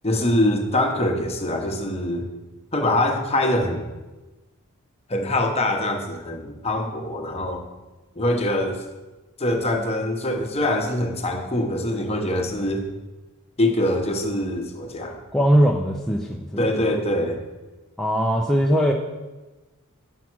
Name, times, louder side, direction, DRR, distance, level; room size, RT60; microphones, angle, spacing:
voice 1, 0.0-2.3 2.7-3.9 5.1-7.6 8.1-8.8 9.4-12.8 13.6-15.2 16.6-17.4, left 1 dB, 30° left, 3 dB, 0.9 m, -24 dB
voice 2, 15.3-16.9 18.0-18.9, equal, ahead, -1 dB, 0.5 m, -20 dB
7.3 x 5.6 x 6.0 m, 1.2 s
head